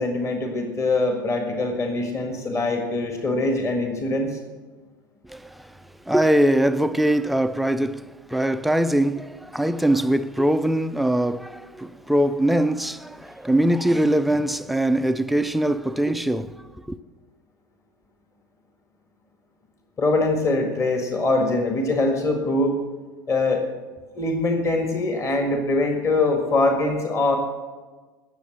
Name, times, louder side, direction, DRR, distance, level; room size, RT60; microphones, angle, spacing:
voice 1, 0.0-4.4 20.0-22.8 23.3-23.6 24.1-27.4, left 2 dB, 25° left, 1.8 m, -23 dB
voice 2, 5.2-5.7 6.1-17.0, right 1 dB, ahead, 0.4 m, -22 dB
18.5 x 7.1 x 6.3 m
figure-of-eight pair, 75°, 12 cm